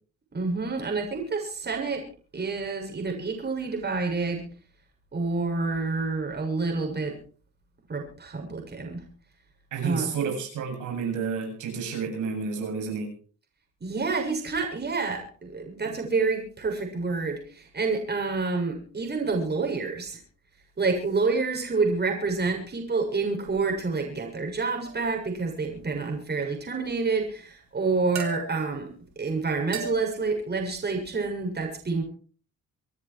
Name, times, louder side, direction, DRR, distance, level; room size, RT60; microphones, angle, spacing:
voice 1, 0.3-2.0 2.3-4.4 5.1-7.2 7.9-9.0 9.8-10.1 13.8-20.2 20.8-32.0, right 4 dB, 35° right, 3 dB, 7.1 m, -28 dB
voice 2, 9.7-13.1, right 6 dB, 80° right, 2 dB, 8.0 m, -30 dB
sound 1, 24.8-25.3 28.2-28.8 29.7-30.3, right 5 dB, 65° right, 4.2 m, -36 dB
27.0 x 9.7 x 4.7 m, 0.41 s
cardioid pair, 90°, 30 cm